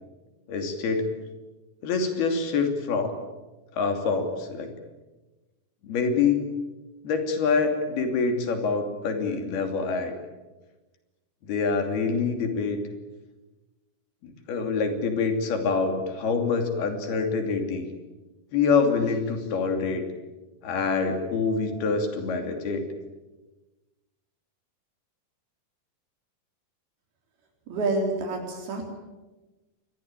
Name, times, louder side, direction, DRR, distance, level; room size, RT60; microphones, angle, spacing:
voice 1, 0.5-1.1 1.8-3.2 3.7-4.7 5.8-6.5 7.0-10.2 11.4-12.8 14.2-17.9 18.5-20.0 20.6-22.9, left 4 dB, 85° left, 6 dB, 4.9 m, -26 dB
voice 2, 27.7-28.9, right 2 dB, 85° right, 1 dB, 5.6 m, -28 dB
27.5 x 21.5 x 9.1 m, 1.2 s
omnidirectional pair, 4.3 m